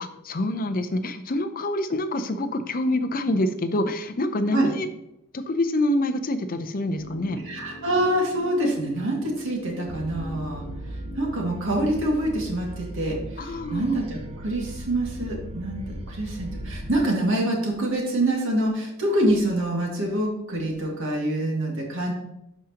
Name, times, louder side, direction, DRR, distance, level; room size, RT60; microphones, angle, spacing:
voice 1, 0.2-4.9 5.3-7.4 13.4-14.0, left 1 dB, 40° left, 9 dB, 0.6 m, -26 dB
sound 1, 6.9-12.9 13.2-13.3, left 2 dB, 80° left, 1.2 m, -43 dB
voice 2, 7.4-10.6 10.9-22.1, right 1 dB, 60° right, -1 dB, 2.0 m, -26 dB
sound 2, 9.9-17.0, right 1 dB, 25° right, 0.6 m, -37 dB
11.5 x 5.0 x 2.9 m, 0.85 s
head